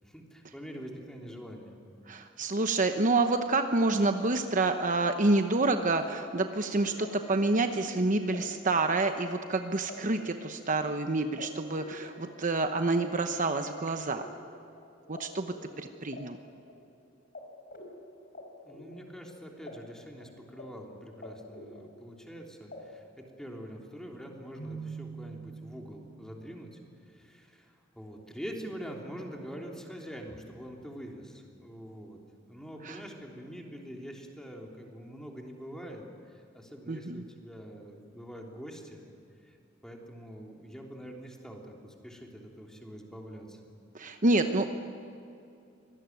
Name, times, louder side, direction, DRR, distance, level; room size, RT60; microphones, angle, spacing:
voice 1, 0.0-1.8 18.6-26.8 27.0-39.1 39.4-39.6 39.8-43.7, equal, 5° left, 0 dB, 3.3 m, -45 dB
voice 2, 2.1-14.3 15.1-16.4 32.8-33.0 36.9-37.2 43.9-44.7, right 2 dB, 40° right, 7 dB, 1.0 m, -28 dB
sound 1, 4.4-15.2 15.5-17.0 17.3-17.4 17.7-19.7 20.0-20.6 20.9-22.3 22.7-22.8, left 2 dB, 50° left, 4.1 m, -48 dB
Keyboard (musical), 24.6-26.4, right 5 dB, 75° left, 5.2 m, -43 dB
25.0 x 19.0 x 9.4 m, 2.6 s
head